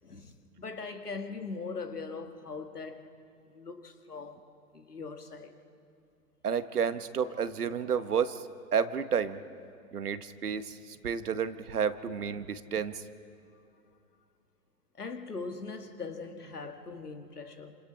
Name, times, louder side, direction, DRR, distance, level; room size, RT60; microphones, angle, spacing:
voice 1, 0.0-3.1 3.5-4.4 4.7-5.6 13.5-14.0 14.9-17.8, left 4 dB, 90° left, 1.7 m, -41 dB
voice 2, 6.4-9.4 9.9-13.0, right 7 dB, 80° right, 1.1 m, -31 dB
28.5 x 27.0 x 4.3 m
figure-of-eight pair, 105°, 45 cm